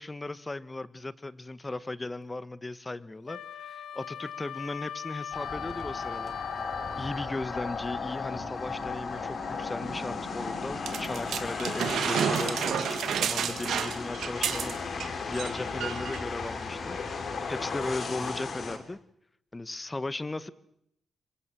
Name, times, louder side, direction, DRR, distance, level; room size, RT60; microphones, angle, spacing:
voice 1, 0.0-6.4 6.9-15.0 15.3-17.0 17.5-19.0 19.5-20.5, left 2 dB, 20° left, 16 dB, 1.3 m, -37 dB
Wind instrument woodwind instrument, 3.3-7.3, left 8 dB, 80° left, 1.6 m, -39 dB
sound 1, 5.3-18.8, left 4 dB, 55° left, 3.9 m, -35 dB
sound 2, 10.9-15.1 15.3-15.5 15.8-16.2 17.0-17.1, right 8 dB, 85° right, 2.0 m, -30 dB
27.0 x 23.0 x 7.6 m, 0.74 s
cardioid pair, 95°, 0 cm